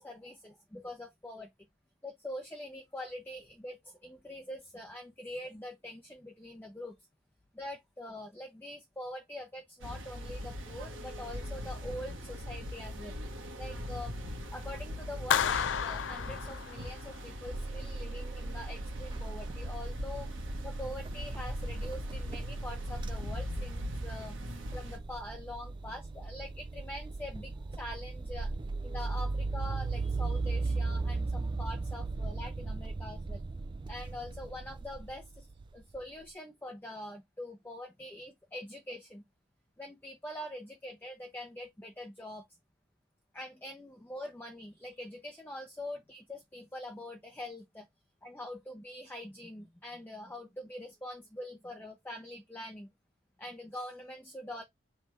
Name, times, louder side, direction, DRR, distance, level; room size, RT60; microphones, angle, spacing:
voice 1, 0.0-1.5 2.0-6.9 7.5-13.2 13.6-14.2 14.5-20.3 20.6-28.5 28.8-33.4 33.9-35.5 35.7-39.2 39.8-42.5 43.3-47.9 48.2-52.9 53.4-54.6, left 1 dB, 10° left, 0.6 m, -44 dB
sound 1, 9.8-25.0, left 1 dB, 90° right, 1.3 m, -41 dB
Clapping, 15.3-17.2, left 8 dB, 75° left, 0.4 m, -31 dB
sound 2, 17.5-36.0, right 3 dB, 25° right, 0.3 m, -37 dB
3.3 x 3.3 x 4.4 m
head